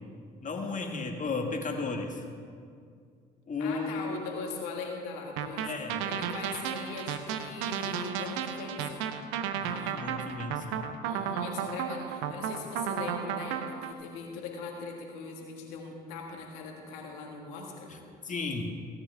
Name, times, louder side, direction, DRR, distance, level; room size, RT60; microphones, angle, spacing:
voice 1, 0.4-2.2 3.5-4.1 5.6-6.0 9.6-10.9 17.9-18.0 18.2-18.6, left 4 dB, 40° left, 3 dB, 1.8 m, -34 dB
voice 2, 3.6-5.7 6.0-9.0 11.0-17.9, left 4 dB, 80° left, 1 dB, 1.7 m, -40 dB
sound 1, 5.4-13.9, right 8 dB, 75° right, 0.7 m, -33 dB
16.5 x 9.6 x 3.4 m, 2.2 s
hypercardioid pair, 50°, 21 cm